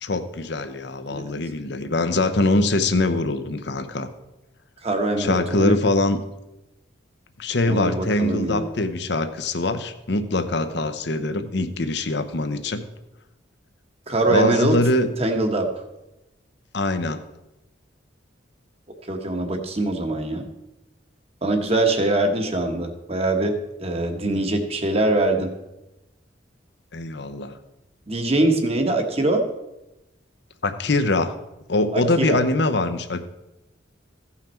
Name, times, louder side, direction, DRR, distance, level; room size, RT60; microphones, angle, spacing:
voice 1, 0.0-4.1 5.2-6.2 7.4-12.8 14.3-15.1 16.7-17.2 24.2-24.4 26.9-27.6 30.6-31.3 31.7-33.3, left 2 dB, 60° left, 9 dB, 0.8 m, -23 dB
voice 2, 4.8-5.8 7.6-8.7 14.1-14.8 15.2-15.7 19.1-20.4 21.4-25.5 28.1-29.4 31.9-32.4, right 2 dB, 35° right, 5 dB, 1.2 m, -23 dB
15.5 x 5.8 x 4.4 m, 0.95 s
head